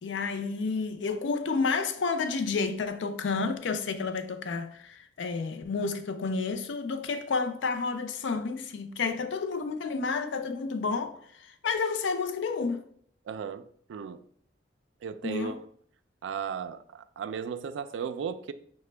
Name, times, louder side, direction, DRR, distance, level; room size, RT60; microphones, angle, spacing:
voice 1, 0.0-12.8 15.2-15.5, left 4 dB, 90° left, 0.4 m, -30 dB
voice 2, 13.3-14.2 15.0-15.6 16.2-18.5, right 7 dB, 85° right, 0.3 m, -35 dB
5.7 x 2.1 x 3.2 m
head